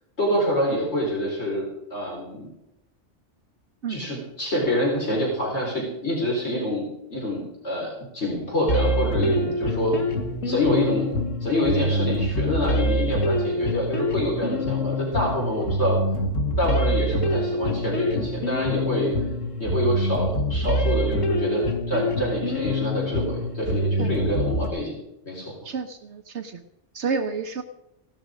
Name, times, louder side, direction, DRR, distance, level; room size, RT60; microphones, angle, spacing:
voice 1, 0.2-2.5 3.9-10.0 10.4-11.1 11.4-16.0 16.6-19.1 19.6-25.0 25.3-25.5, left 1 dB, 60° left, -3 dB, 4.7 m, -26 dB
sound 1, 8.7-24.7, equal, 85° left, 2.0 m, -25 dB
voice 2, 25.6-26.6 26.9-27.6, right 5 dB, 70° right, 9 dB, 1.2 m, -29 dB
17.0 x 12.0 x 5.1 m, 0.85 s
omnidirectional pair, 1.3 m